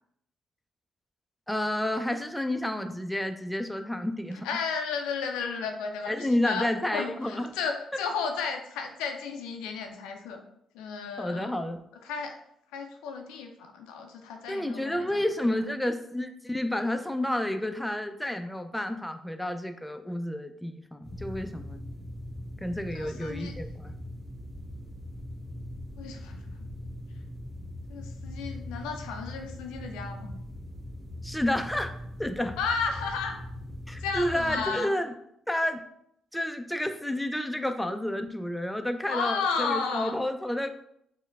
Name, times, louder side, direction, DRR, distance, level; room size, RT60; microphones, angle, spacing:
voice 1, 1.5-4.5 6.1-7.5 11.2-11.8 14.5-21.9 22.6-23.9 31.2-32.6 33.9-35.1 35.5-35.8 36.3-40.7, left 1 dB, 5° left, 7 dB, 0.3 m, -30 dB
voice 2, 4.4-10.4 10.7-11.6 12.0-12.4 12.7-15.2 22.9-23.6 26.0-26.7 27.9-30.3 32.6-33.4 34.0-34.9 39.1-40.2, left 5 dB, 85° left, 4 dB, 0.3 m, -33 dB
sound 1, 21.0-34.7, left 1 dB, 40° right, 1.0 m, -41 dB
4.4 x 2.1 x 2.3 m, 0.73 s
hypercardioid pair, 50°, 0 cm